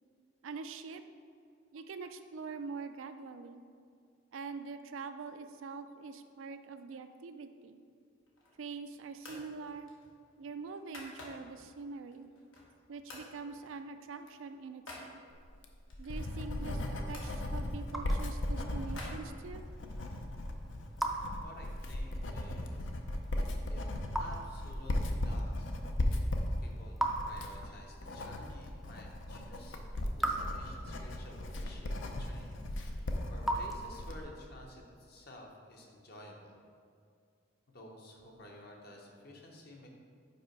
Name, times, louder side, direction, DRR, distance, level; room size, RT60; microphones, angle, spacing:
voice 1, 0.4-1.0 1.7-3.6 4.3-7.8 8.6-9.9 10.4-12.3 12.9-15.2 16.0-19.6, right 4 dB, 85° right, 9 dB, 0.4 m, -44 dB
sound 1, 8.2-8.7 9.2-9.5 9.9-11.7 12.1-12.8 13.1-13.3 13.6-15.1 15.9-17.4 17.9-19.8, left 2 dB, 85° left, 1.2 m, -51 dB
Writing, 15.5-34.2, left 1 dB, 70° left, 0.5 m, -37 dB
Raindrop / Drip, 17.2-34.4, right 1 dB, ahead, 0.4 m, -42 dB
voice 2, 21.4-22.9 23.7-23.8 24.2-25.8 26.6-29.8 30.1-36.6 37.7-39.9, left 1 dB, 50° left, 0 dB, 0.9 m, -52 dB
5.5 x 4.8 x 4.5 m, 2.2 s
head